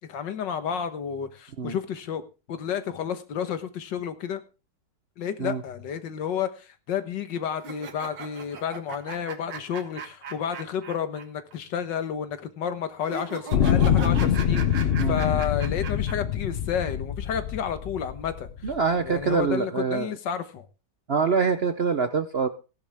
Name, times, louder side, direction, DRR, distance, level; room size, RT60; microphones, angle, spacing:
voice 1, 0.1-2.2 2.5-4.4 5.2-18.7 19.0-20.7, left 8 dB, 85° left, 1.8 m, -31 dB
sound 1, 7.6-11.2 11.5-11.6 13.0-16.1, right 5 dB, 85° right, 2.1 m, -38 dB
sound 2, 13.5-18.8 19.5-19.6, left 9 dB, 60° left, 0.6 m, -24 dB
voice 2, 15.0-15.4 18.6-20.1 21.1-22.5, right 5 dB, 50° right, 0.7 m, -25 dB
16.0 x 11.0 x 3.5 m
omnidirectional pair, 1.9 m